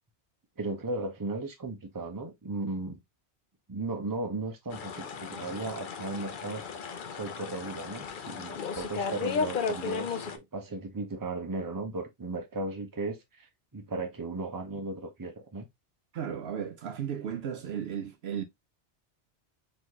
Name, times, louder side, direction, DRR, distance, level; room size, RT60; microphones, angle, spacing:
voice 1, 0.6-3.0 3.7-6.8 7.1-13.5 13.7-15.7, right 2 dB, 20° right, 0.8 m, -36 dB
sound 1, 4.7-10.4, left 5 dB, 55° left, 0.7 m, -35 dB
voice 2, 16.1-18.4, right 8 dB, 70° right, 0.8 m, -35 dB
4.1 x 3.2 x 3.0 m
omnidirectional pair, 1.2 m